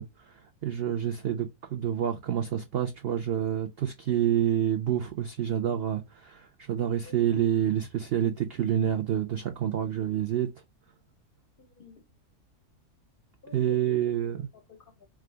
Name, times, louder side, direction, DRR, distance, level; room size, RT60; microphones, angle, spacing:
voice 1, 0.0-10.5 13.5-14.5, right 10 dB, 80° right, 0.5 m, -28 dB
voice 2, 11.6-12.0 13.4-15.1, left 4 dB, 60° left, 0.6 m, -50 dB
4.7 x 2.4 x 3.3 m
omnidirectional pair, 1.6 m